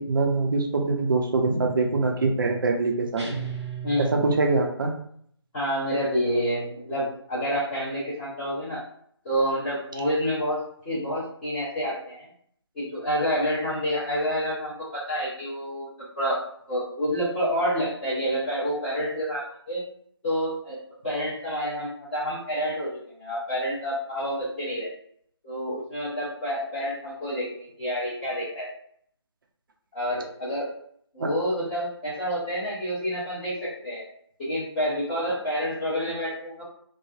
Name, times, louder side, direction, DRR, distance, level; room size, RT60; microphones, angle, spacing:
voice 1, 0.0-3.3 4.0-4.9 31.2-31.3, right 3 dB, 50° right, 2 dB, 0.5 m, -24 dB
sound 1, 3.2-4.9, right 6 dB, 90° right, 0.8 m, -36 dB
voice 2, 3.8-4.2 5.5-8.8 9.2-12.3 12.7-15.9 16.1-16.4 16.7-19.8 20.2-20.8 21.0-24.9 25.4-28.7 29.9-30.7 31.1-34.0 34.4-36.6, equal, 15° left, -14 dB, 0.8 m, -28 dB
3.2 x 2.0 x 2.3 m, 0.65 s
figure-of-eight pair, 160°, 14 cm